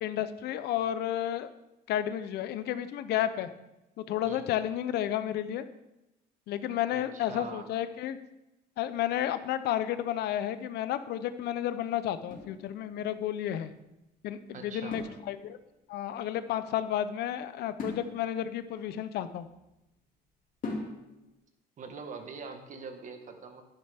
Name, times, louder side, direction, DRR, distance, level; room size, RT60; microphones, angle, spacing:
voice 1, 0.0-1.5 1.9-3.5 4.0-5.6 6.5-8.2 8.8-13.7 14.2-15.6 15.9-19.5, left 11 dB, 75° left, 12 dB, 0.7 m, -32 dB
voice 2, 6.9-7.7 14.5-15.0 21.8-23.6, right 5 dB, 50° right, 6 dB, 1.4 m, -43 dB
sound 1, 12.3-13.3 14.9-15.8 17.8-19.8 20.6-21.4, left 2 dB, 55° left, 2.5 m, -41 dB
9.9 x 9.9 x 3.5 m, 0.91 s
cardioid pair, 110°, 17 cm